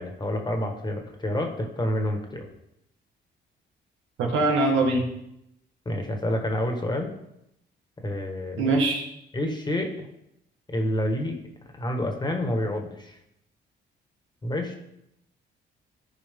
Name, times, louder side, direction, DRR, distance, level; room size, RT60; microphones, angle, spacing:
voice 1, 0.0-2.5 5.8-7.1 8.0-8.7 9.3-10.1 10.7-11.4 11.7-13.2 14.4-14.7, left 1 dB, 20° left, 3 dB, 1.7 m, -28 dB
voice 2, 4.2-5.0 8.6-9.0, right 2 dB, 85° right, 0 dB, 1.9 m, -22 dB
14.0 x 4.8 x 3.8 m, 0.81 s
cardioid pair, 90°, 20 cm